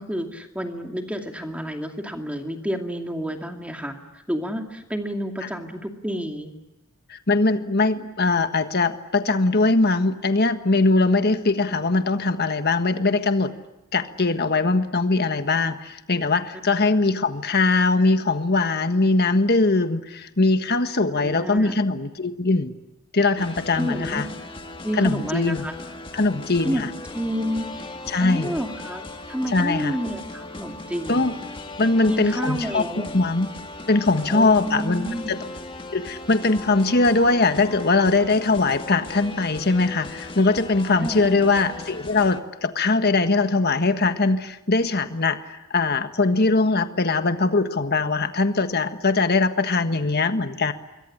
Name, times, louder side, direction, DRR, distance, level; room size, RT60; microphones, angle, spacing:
voice 1, 0.0-6.5 21.2-21.8 23.7-24.2 24.8-25.7 26.6-26.8 27.1-27.7 28.2-31.3 32.1-33.1 34.3-35.4 40.9-41.3, equal, 5° right, 4 dB, 2.5 m, -30 dB
voice 2, 7.1-13.5 13.9-22.7 23.1-24.3 25.0-25.7 26.1-26.9 28.1-28.6 29.5-29.9 31.1-31.3 31.8-32.8 33.1-33.5 33.9-35.4 35.9-50.7, left 3 dB, 45° left, 9 dB, 1.5 m, -21 dB
sound 1, 23.4-42.4, left 2 dB, 25° left, 1.7 m, -38 dB
26.5 x 22.5 x 10.0 m, 0.95 s
head